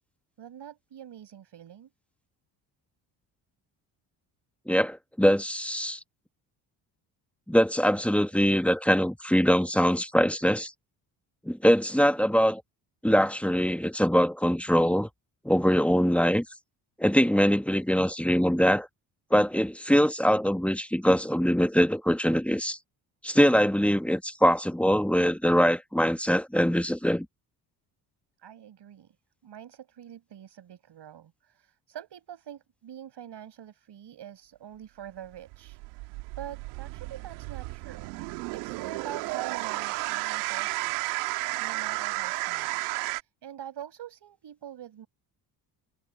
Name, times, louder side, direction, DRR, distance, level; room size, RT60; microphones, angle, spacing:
voice 1, 0.4-1.9 28.4-29.2 29.4-35.8 36.0-38.1 38.5-42.9 43.2-45.1, right 10 dB, 60° right, 6.2 m, -45 dB
voice 2, 4.7-6.0 7.5-10.7 11.4-12.6 13.0-15.1 15.4-16.4 17.0-18.9 19.3-22.8 23.2-27.3, equal, 5° left, 1.4 m, -23 dB
sound 1, 35.3-43.2, right 24 dB, 85° right, 2.0 m, -33 dB
hypercardioid pair, 55°, 48 cm